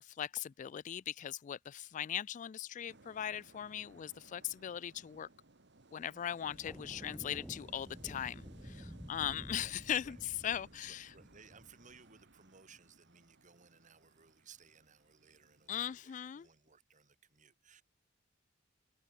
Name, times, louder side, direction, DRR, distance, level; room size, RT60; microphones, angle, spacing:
voice 1, 0.0-5.3 5.9-11.1 15.7-16.5, left 10 dB, 40° left, 0.3 m, -39 dB
sound 1, 2.9-16.0, right 2 dB, 60° right, 2.0 m, -62 dB
sound 2, 6.4-12.0, equal, ahead, 2.6 m, -51 dB
voice 2, 10.5-17.8, right 5 dB, 40° right, 2.6 m, -61 dB
open air
head